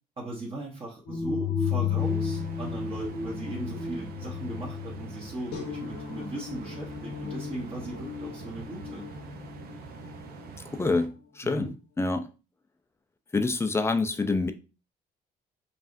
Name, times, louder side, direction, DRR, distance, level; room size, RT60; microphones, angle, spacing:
voice 1, 0.2-9.1 11.4-11.7, right 2 dB, 35° right, 1.1 m, -38 dB
sound 1, 1.1-11.0, left 6 dB, 75° left, 1.1 m, -34 dB
sound 2, 2.0-11.1, right 6 dB, 65° right, 0.7 m, -45 dB
voice 2, 10.7-11.1 11.4-11.7 12.0-12.3 13.3-14.5, left 3 dB, 15° left, 0.4 m, -26 dB
5.4 x 2.4 x 2.6 m
cardioid pair, 110°, 17 cm